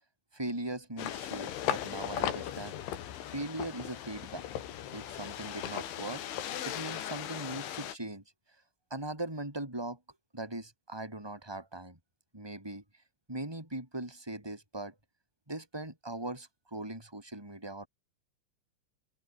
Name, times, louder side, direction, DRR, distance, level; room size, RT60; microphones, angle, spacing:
voice 1, 0.3-2.8 3.2-4.5 4.9-6.2 6.6-8.2 8.9-10.0 10.3-12.0 12.3-12.8 13.3-14.9 15.5-17.9, right 1 dB, 5° right, 7.2 m, -40 dB
sound 1, 1.0-8.0, left 11 dB, 75° left, 4.7 m, -37 dB
open air
omnidirectional pair, 5.6 m